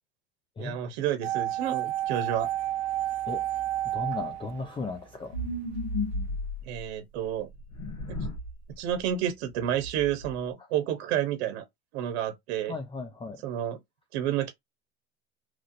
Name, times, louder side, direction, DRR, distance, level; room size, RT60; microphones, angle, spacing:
voice 1, 0.6-2.5 6.7-7.5 8.8-11.6 11.9-12.8 13.4-13.8 14.1-14.5, right 10 dB, 80° right, 0.8 m, -30 dB
sound 1, 1.2-5.3 5.6-5.7, right 13 dB, 55° right, 0.5 m, -31 dB
voice 2, 3.9-5.3 12.7-13.4, left 3 dB, 15° left, 0.4 m, -35 dB
sound 2, 5.3-6.9 7.5-8.5 8.9-9.0 9.5-10.3, left 1 dB, 65° left, 1.3 m, -34 dB
3.1 x 2.5 x 2.5 m
supercardioid pair, 100°, 31 cm